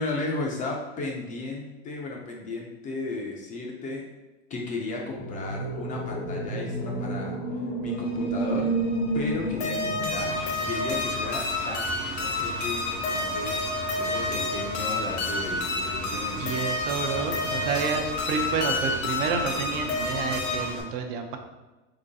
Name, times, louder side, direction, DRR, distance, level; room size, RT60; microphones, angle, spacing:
voice 1, 0.0-4.1 4.5-8.8 9.1-10.3 10.6-13.6 13.9-16.8, left 2 dB, 25° left, 0 dB, 0.3 m, -35 dB
sound 1, 5.1-11.2, right 2 dB, 90° left, 1.3 m, -31 dB
sound 2, 8.0-20.7, left 2 dB, 70° left, 0.8 m, -30 dB
Engine, 10.1-20.8, right 2 dB, 90° right, 1.0 m, -38 dB
voice 2, 16.3-21.4, right 5 dB, 55° right, 4 dB, 0.5 m, -30 dB
3.8 x 3.1 x 2.6 m, 1.1 s
supercardioid pair, 150°, 33 cm